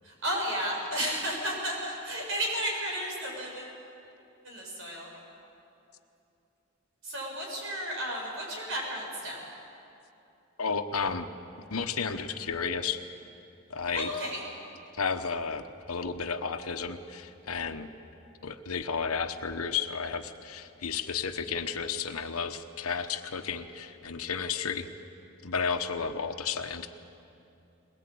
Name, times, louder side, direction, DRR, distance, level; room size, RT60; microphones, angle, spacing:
voice 1, 0.0-3.8 4.4-5.1 7.0-9.4 13.9-14.4, equal, 65° right, -1 dB, 7.4 m, -33 dB
voice 2, 10.6-11.3 11.7-13.0 13.7-14.1 14.9-17.9 18.4-24.9 25.4-26.9, left 5 dB, 90° left, 8 dB, 1.2 m, -32 dB
21.5 x 21.5 x 8.6 m, 2.8 s
head